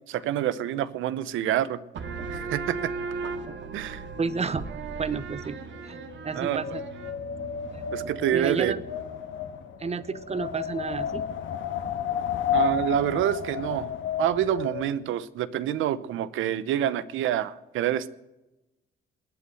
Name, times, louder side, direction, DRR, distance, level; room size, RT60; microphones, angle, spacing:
voice 1, 0.1-1.8 2.3-2.9 3.7-4.0 6.3-6.6 7.9-8.8 12.5-18.1, right 11 dB, 85° right, 16 dB, 0.8 m, -27 dB
sound 1, 1.9-9.2, right 4 dB, 65° right, 2.0 m, -37 dB
voice 2, 4.2-4.6 5.0-5.6 5.8-6.0 6.2-6.8 7.7-7.8 8.3-8.8 9.8-11.2, right 4 dB, 30° right, 15 dB, 1.0 m, -30 dB
Wind, 5.7-14.9, left 9 dB, 75° left, 1.6 m, -32 dB
21.0 x 8.5 x 7.7 m, 1.0 s
cardioid pair, 90°, 20 cm